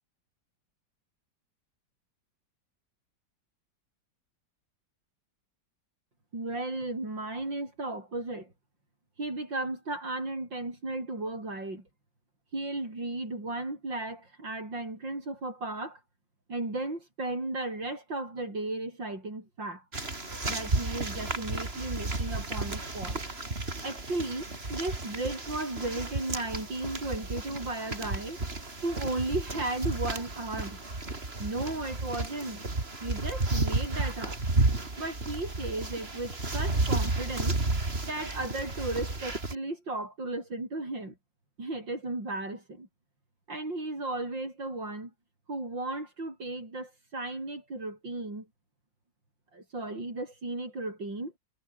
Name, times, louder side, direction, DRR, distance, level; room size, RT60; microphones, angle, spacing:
voice 1, 6.3-8.5 9.2-11.9 12.5-16.0 16.5-19.8 20.5-23.2 23.8-28.4 28.8-30.8 31.4-32.6 33.0-34.4 35.0-37.6 38.0-41.2 41.6-42.9 43.5-45.1 45.5-48.5 49.5-51.3, right 2 dB, 75° right, 8.7 m, -35 dB
sound 1, 19.9-39.5, right 2 dB, 30° right, 3.6 m, -32 dB
omnidirectional pair, 2.0 m